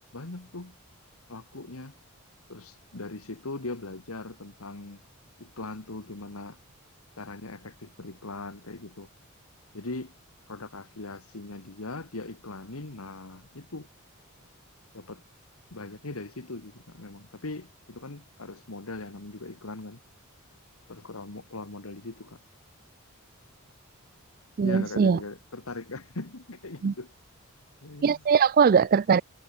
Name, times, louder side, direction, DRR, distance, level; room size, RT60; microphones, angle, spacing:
voice 1, 0.1-0.8 1.3-1.9 2.5-5.0 5.4-6.6 7.2-9.1 9.7-10.1 10.5-13.9 14.9-15.2 15.7-20.0 20.9-22.4 24.6-27.1 27.8-28.2, left 2 dB, 80° left, 1.8 m, -40 dB
voice 2, 24.6-25.2 26.8-26.9 28.0-29.2, right 6 dB, 40° right, 0.3 m, -21 dB
head